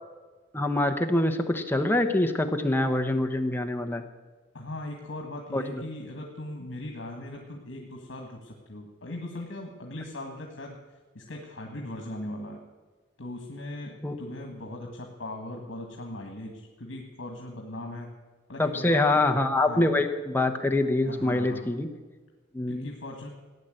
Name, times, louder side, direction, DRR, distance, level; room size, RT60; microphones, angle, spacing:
voice 1, 0.5-4.0 5.5-5.8 14.0-14.1 18.6-21.9 22.5-22.9, left 2 dB, 10° left, 5 dB, 1.0 m, -25 dB
voice 2, 4.5-10.8 11.1-12.6 13.2-18.2 18.5-19.2 19.7-19.9 21.0-21.7 22.7-23.3, left 1 dB, 80° left, 1 dB, 1.8 m, -39 dB
16.0 x 10.0 x 7.8 m, 1.3 s
head